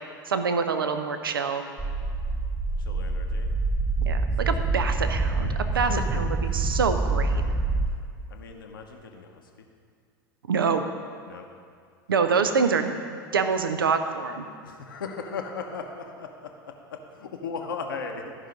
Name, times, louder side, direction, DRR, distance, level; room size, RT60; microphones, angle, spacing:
voice 1, 0.3-1.6 4.1-6.3 6.5-7.4 10.5-10.8 12.1-12.9 13.3-14.5, right 5 dB, 80° right, 8 dB, 0.5 m, -25 dB
sound 1, 1.8-7.9, right 3 dB, 10° right, 0.6 m, -26 dB
voice 2, 2.8-3.5 4.6-4.7 5.7-6.6 8.3-9.7 11.3-11.5 14.6-18.3, left 5 dB, 75° left, 3 dB, 0.9 m, -37 dB
13.5 x 5.5 x 5.2 m, 2.2 s
figure-of-eight pair, 80°, 12 cm